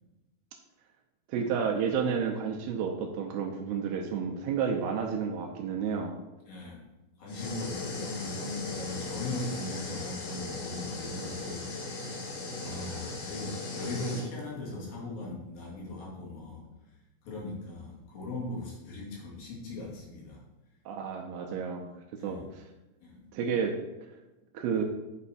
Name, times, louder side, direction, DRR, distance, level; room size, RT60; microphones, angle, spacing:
voice 1, 1.3-6.1 20.9-21.9 22.2-22.6 23.3-23.8 24.5-24.8, right 6 dB, 80° right, 2 dB, 2.6 m, -31 dB
voice 2, 6.5-6.8 7.2-12.2 12.6-16.7 17.2-20.4 22.2-22.5 23.0-23.2, left 2 dB, 65° left, -4 dB, 3.9 m, -39 dB
sound 1, 7.3-14.3, left 3 dB, 85° left, 4.0 m, -37 dB
10.0 x 5.7 x 4.3 m, 1.0 s
omnidirectional pair, 4.8 m